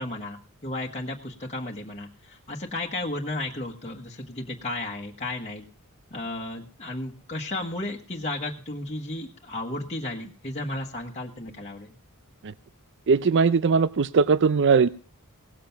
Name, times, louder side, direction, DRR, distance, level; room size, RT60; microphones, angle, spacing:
voice 1, 0.0-5.6 6.1-12.0, left 2 dB, 30° left, -1 dB, 1.4 m, -34 dB
voice 2, 13.1-14.9, right 5 dB, 55° right, 15 dB, 0.5 m, -20 dB
18.0 x 7.6 x 5.7 m, 0.41 s
head